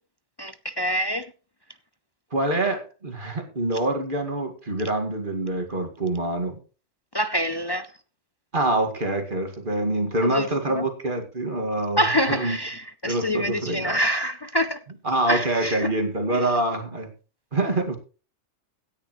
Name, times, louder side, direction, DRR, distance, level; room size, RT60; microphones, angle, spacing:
voice 1, 0.4-1.3 7.1-7.9 10.2-10.8 12.0-14.8 15.3-15.9 16.3-16.4, equal, 40° left, 0.3 m, -26 dB
voice 2, 2.3-6.6 8.5-12.0 12.3-12.6 13.0-14.0 15.0-17.1 17.5-18.0, right 2 dB, 40° right, 2.2 m, -25 dB
17.0 x 10.0 x 3.1 m
omnidirectional pair, 1.3 m